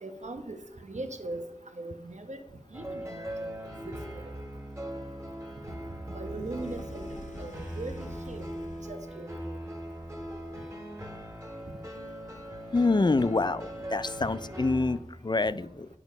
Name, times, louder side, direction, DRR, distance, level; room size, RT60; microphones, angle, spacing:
voice 1, 0.0-1.4 1.7-2.4 2.7-3.5 3.8-4.3 5.7-5.8 6.1-7.1 7.4-8.5 8.9-9.4 14.2-14.3, right 2 dB, 60° right, 6 dB, 1.1 m, -40 dB
sound 1, 2.7-15.0, equal, 20° right, 2.1 m, -40 dB
sound 2, 6.2-9.3 9.8-10.7, left 2 dB, 70° left, 1.1 m, -48 dB
voice 2, 12.7-13.6 13.9-15.9, left 3 dB, 35° left, 16 dB, 0.4 m, -26 dB
9.2 x 6.0 x 5.3 m, 0.85 s
wide cardioid pair, 40°, 13 cm